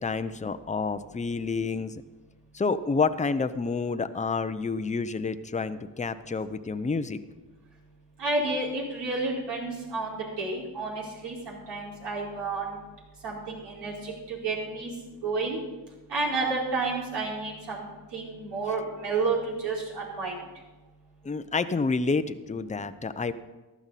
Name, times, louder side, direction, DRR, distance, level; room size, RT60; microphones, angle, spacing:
voice 1, 0.0-2.0 2.5-7.2 21.2-23.3, left 4 dB, 15° left, 11 dB, 0.7 m, -29 dB
voice 2, 8.2-12.8 13.2-14.9 15.2-15.6 16.1-17.9 18.1-20.4, right 3 dB, 75° right, -5 dB, 4.8 m, -30 dB
15.5 x 11.5 x 4.2 m, 1.2 s
cardioid pair, 65°, 41 cm